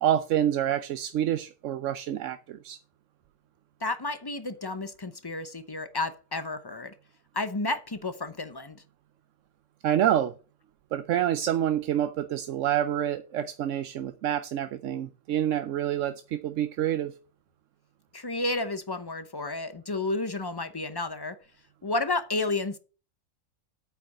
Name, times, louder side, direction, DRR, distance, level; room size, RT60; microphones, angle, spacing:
voice 1, 0.0-2.8 9.8-10.3 10.9-17.1, right 11 dB, 65° right, 0.9 m, -27 dB
voice 2, 3.8-6.9 7.3-8.8 18.1-21.4 21.8-22.8, left 2 dB, 25° left, 0.6 m, -31 dB
8.5 x 5.9 x 7.8 m
omnidirectional pair, 1.6 m